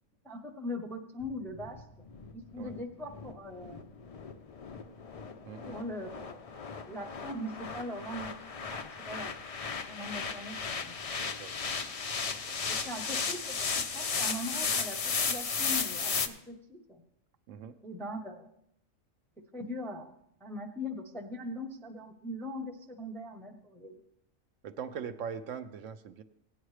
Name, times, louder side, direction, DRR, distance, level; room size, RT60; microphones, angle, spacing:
voice 1, 0.2-1.8 2.3-3.8 5.7-6.4 6.9-8.4 8.7-9.3 9.9-11.0 12.7-17.0 17.8-18.5 19.5-20.1 20.4-24.0, left 1 dB, 5° left, 2 dB, 0.5 m, -41 dB
sound 1, 1.2-16.3, left 5 dB, 65° left, 0.3 m, -35 dB
voice 2, 5.4-5.8 11.2-11.5 12.3-12.6 17.5-17.8 24.6-26.2, right 7 dB, 75° right, 9 dB, 0.9 m, -41 dB
17.0 x 9.3 x 3.2 m, 0.76 s
omnidirectional pair, 1.4 m